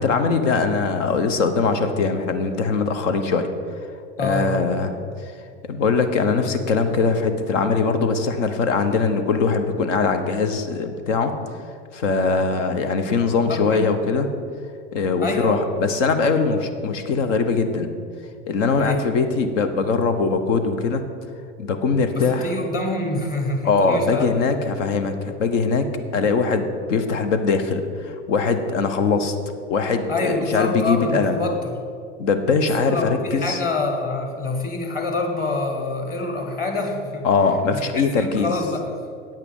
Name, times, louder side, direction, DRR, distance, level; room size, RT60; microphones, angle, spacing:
voice 1, 0.0-3.5 4.2-4.9 5.2-5.3 5.6-11.3 11.9-14.3 14.9-17.9 18.5-21.0 21.6-22.5 23.6-25.9 26.1-29.3 29.7-31.4 32.2-33.6 37.2-38.5, left 4 dB, 70° left, 8 dB, 1.0 m, -21 dB
voice 2, 4.2-4.6 13.5-13.9 15.2-15.6 18.8-19.0 22.1-24.3 30.1-31.8 32.9-37.2 37.7-38.9, left 2 dB, 25° left, 3 dB, 1.6 m, -26 dB
8.8 x 8.3 x 5.4 m, 2.2 s
hypercardioid pair, 95°, 38 cm